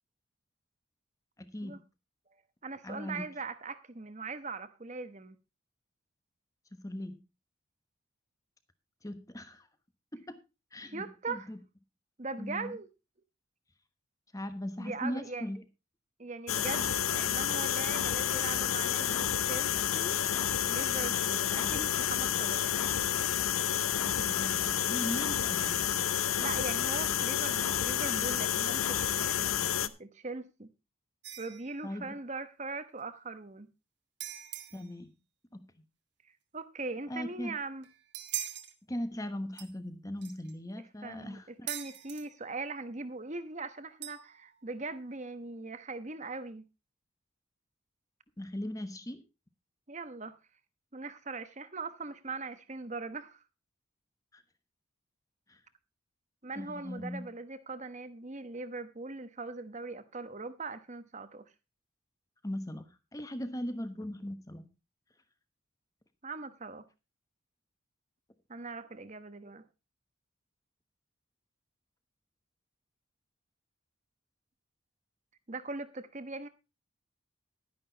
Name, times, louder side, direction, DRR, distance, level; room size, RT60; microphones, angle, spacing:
voice 1, 1.4-1.8 2.8-3.3 6.7-7.2 9.0-9.7 10.1-10.4 10.7-11.6 12.4-12.8 14.3-15.6 21.3-21.7 23.9-25.9 31.8-32.2 34.7-35.1 35.5-35.8 37.1-37.5 38.9-41.7 48.4-49.2 54.3-54.4 55.5-55.6 56.6-57.3 62.4-64.7, left 1 dB, 15° left, 1.2 m, -39 dB
voice 2, 2.6-5.4 10.9-11.5 12.2-12.9 14.8-15.5 16.2-20.2 20.6-23.0 26.4-29.5 29.8-30.7 31.4-33.7 36.5-37.9 41.0-46.6 49.9-50.3 50.9-53.4 56.4-61.4 66.2-66.8 68.5-69.6 75.5-76.5, right 3 dB, 35° right, 1.0 m, -40 dB
sound 1, 16.5-29.9, left 10 dB, 85° left, 0.7 m, -30 dB
sound 2, 31.2-31.8 34.2-34.9 37.8-38.7 39.6-39.7 40.2-40.5 41.7-42.3 44.0-44.5, right 11 dB, 55° right, 1.4 m, -41 dB
11.5 x 10.5 x 4.0 m
head